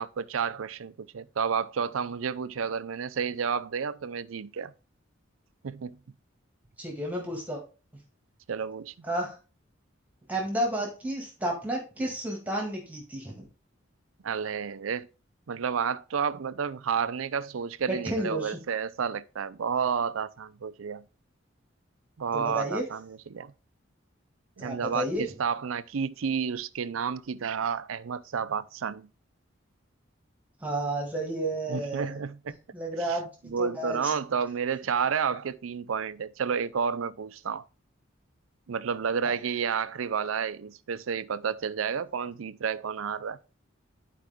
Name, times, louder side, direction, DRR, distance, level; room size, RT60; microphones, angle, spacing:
voice 1, 0.0-4.7 5.6-6.0 8.5-8.9 14.2-15.1 15.5-21.0 22.2-23.5 24.6-29.1 31.7-32.5 33.0-33.2 33.4-37.6 38.7-43.4, right 6 dB, 85° right, 0.5 m, -31 dB
voice 2, 6.8-7.6 9.0-9.3 10.3-13.4 17.9-18.6 22.3-22.9 24.6-25.2 30.6-32.2 32.5-34.1 39.2-39.3, right 1 dB, 10° right, 1.9 m, -32 dB
10.5 x 4.7 x 3.5 m
head